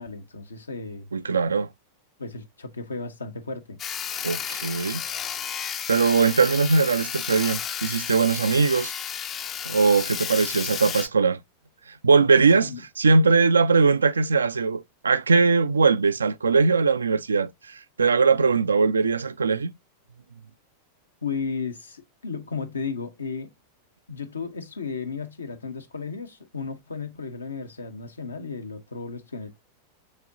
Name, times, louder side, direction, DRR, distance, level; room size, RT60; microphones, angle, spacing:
voice 1, 0.0-1.1 2.2-3.8 12.6-12.8 21.2-23.5 24.1-29.6, left 5 dB, 75° left, 0.8 m, -34 dB
voice 2, 1.1-1.7 4.2-5.0 5.9-8.9 9.6-11.4 11.9-19.7, right 4 dB, 75° right, 0.3 m, -21 dB
Sawing, 3.8-11.1, left 8 dB, 30° left, 0.4 m, -32 dB
6.3 x 2.9 x 2.5 m
figure-of-eight pair, 90°, 0 cm